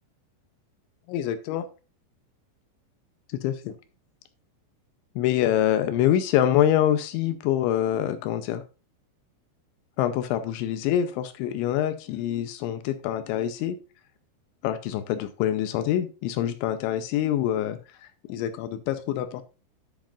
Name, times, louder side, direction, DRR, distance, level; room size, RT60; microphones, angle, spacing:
voice 1, 1.1-1.7 3.4-3.7 5.2-8.6 10.0-13.8 14.6-17.8 18.3-19.4, left 11 dB, 85° left, 10 dB, 2.8 m, -25 dB
10.5 x 7.6 x 2.5 m, 0.32 s
omnidirectional pair, 5.8 m